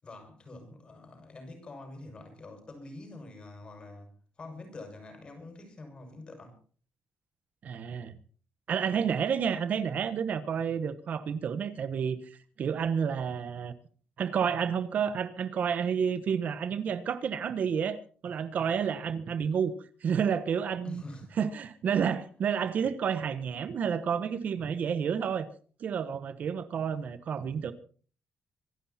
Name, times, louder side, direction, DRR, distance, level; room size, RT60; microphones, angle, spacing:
voice 1, 0.0-4.1 4.4-6.6 20.8-21.4, left 2 dB, 30° left, 6.8 m, -46 dB
voice 2, 7.6-8.2 8.7-13.7 14.2-18.0 18.2-19.7 20.0-21.0 21.4-25.5 25.8-27.7, right 7 dB, 55° right, 1.3 m, -30 dB
25.0 x 12.0 x 4.4 m
cardioid pair, 145°, 3 cm